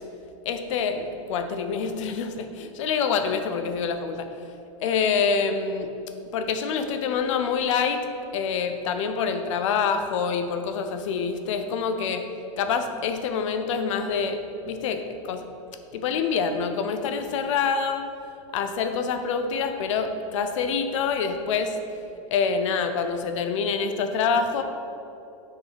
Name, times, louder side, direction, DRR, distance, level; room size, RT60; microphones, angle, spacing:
voice 1, 0.4-4.3 4.8-5.9 6.3-12.3 12.6-15.5 15.9-18.1 18.5-21.8 22.3-24.6, left 5 dB, 65° left, 7 dB, 0.7 m, -26 dB
7.2 x 4.8 x 5.1 m, 2.7 s
supercardioid pair, 140°, 17 cm